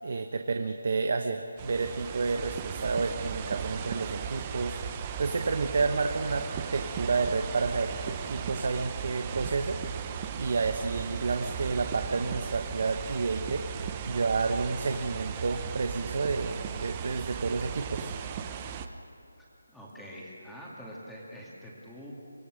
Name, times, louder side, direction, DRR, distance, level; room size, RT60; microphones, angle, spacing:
voice 1, 0.0-18.1, right 4 dB, 50° right, 6 dB, 1.1 m, -30 dB
sound 1, 1.6-18.9, right 7 dB, 20° right, 0.8 m, -37 dB
voice 2, 19.7-22.1, equal, ahead, -6 dB, 2.6 m, -45 dB
24.5 x 19.5 x 6.5 m, 2.8 s
figure-of-eight pair, 170°, 0 cm